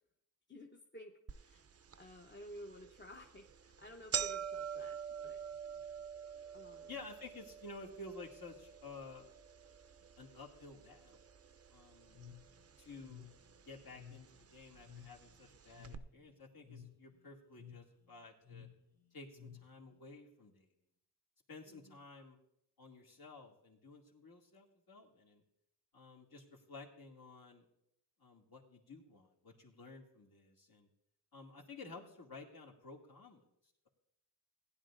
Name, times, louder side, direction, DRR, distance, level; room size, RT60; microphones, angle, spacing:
voice 1, 0.5-1.6 2.0-5.4 6.5-6.9 21.7-22.0, equal, 25° left, 1 dB, 1.0 m, -54 dB
sound 1, 1.3-1.4 1.9-2.0 2.8-3.0 3.4-3.5 3.7-11.9 12.2-13.0 13.8-13.9 14.8-14.9 15.2-15.3 15.8-16.0, right 7 dB, 35° right, 0.6 m, -44 dB
voice 2, 6.9-9.3 10.2-11.2 11.7-12.2 12.8-13.3 13.7-18.7 19.1-20.7 21.5-22.4 22.8-25.4 25.9-27.6 28.2-30.9 31.3-33.4, left 3 dB, 60° left, -1 dB, 2.4 m, -53 dB
sound 2, 12.1-20.0, left 8 dB, 80° left, 3.1 m, -56 dB
16.0 x 10.5 x 2.6 m, 0.79 s
cardioid pair, 60°, 42 cm